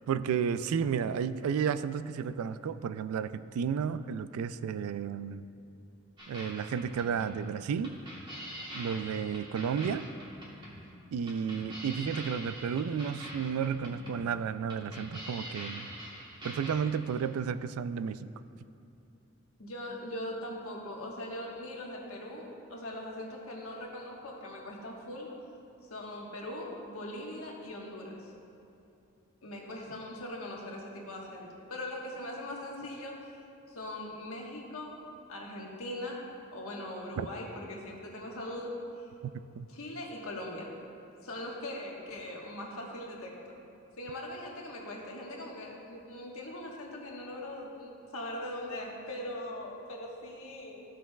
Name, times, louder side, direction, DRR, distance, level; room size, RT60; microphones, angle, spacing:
voice 1, 0.1-5.4 6.3-8.0 8.7-10.1 11.1-15.9 16.4-18.3 37.2-37.3 39.6-39.7, right 7 dB, 85° right, 16 dB, 0.3 m, -32 dB
sound 1, 6.2-17.3, equal, 20° right, 1.2 m, -45 dB
voice 2, 9.6-10.0 19.6-25.3 25.8-28.3 29.4-33.3 33.7-36.2 36.5-39.1 39.7-40.7 41.2-43.6 44.0-50.8, left 1 dB, 80° left, -2 dB, 1.3 m, -41 dB
14.5 x 6.1 x 2.3 m, 2.8 s
head